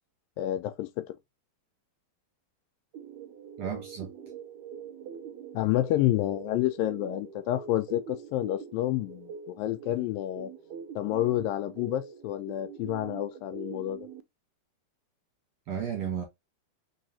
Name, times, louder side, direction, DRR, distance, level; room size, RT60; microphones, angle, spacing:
voice 1, 0.4-1.2 5.5-10.5 11.0-14.1, left 14 dB, 80° left, 2.2 m, -29 dB
sound 1, 2.9-14.2, right 7 dB, 90° right, 1.7 m, -44 dB
voice 2, 3.6-4.1 15.7-16.2, right 8 dB, 65° right, 1.7 m, -33 dB
4.7 x 4.0 x 2.7 m
omnidirectional pair, 4.2 m